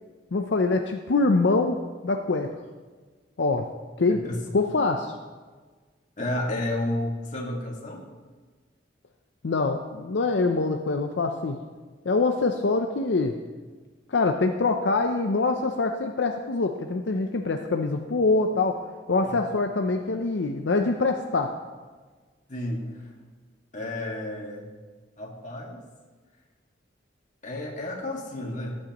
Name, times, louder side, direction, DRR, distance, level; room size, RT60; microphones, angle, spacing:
voice 1, 0.3-2.5 3.4-3.7 4.0-4.2 4.5-5.1 9.4-11.6 12.1-13.4 14.1-21.5, left 3 dB, 75° left, 4 dB, 0.6 m, -24 dB
voice 2, 4.1-4.4 6.2-8.0 19.2-19.4 22.5-23.1 23.7-24.7 25.2-25.8 27.4-28.8, left 1 dB, 45° left, -1 dB, 2.0 m, -31 dB
17.5 x 8.7 x 3.0 m, 1.4 s
head